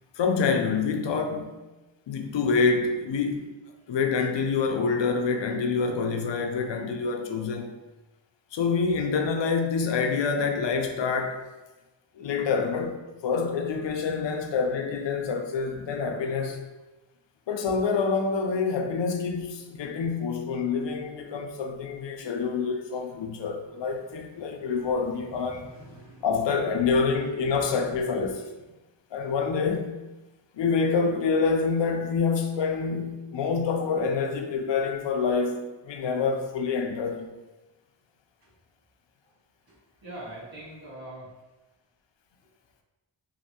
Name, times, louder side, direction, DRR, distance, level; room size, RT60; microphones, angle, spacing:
voice 1, 0.2-1.5 2.1-3.5 3.9-7.7 8.5-11.5 12.2-16.7 17.5-25.7 26.2-28.5 29.1-30.0 30.5-37.3, left 5 dB, 65° left, 0.5 m, -27 dB
voice 2, 22.1-22.7 23.6-26.6 38.4-38.5 39.2-39.3 39.7-41.3, right 1 dB, 50° right, 1.5 m, -46 dB
3.2 x 2.6 x 2.8 m
wide cardioid pair, 115°, 47 cm